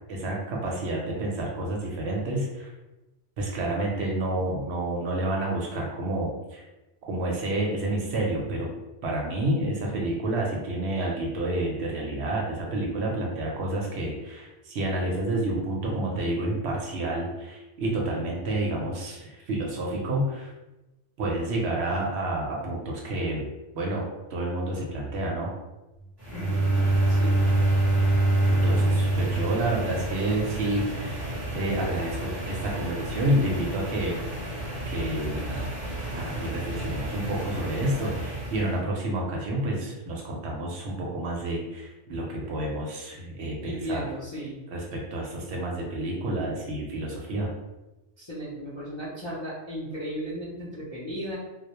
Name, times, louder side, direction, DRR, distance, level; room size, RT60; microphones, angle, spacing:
voice 1, 0.1-2.7 3.4-6.6 7.1-8.7 9.0-20.5 21.2-23.5 23.7-25.5 28.5-31.2 31.5-34.2 34.9-35.6 36.1-44.1 44.7-47.6, right 1 dB, 65° right, -1 dB, 0.8 m, -29 dB
sound 1, 26.2-38.8, right 1 dB, 25° right, 0.6 m, -34 dB
Bowed string instrument, 26.3-30.8, right 2 dB, 75° left, 1.0 m, -24 dB
voice 2, 26.3-27.4 35.1-35.7 43.6-44.6 48.2-51.3, equal, 40° left, -10 dB, 0.4 m, -36 dB
2.2 x 2.1 x 2.8 m, 1.0 s
omnidirectional pair, 1.3 m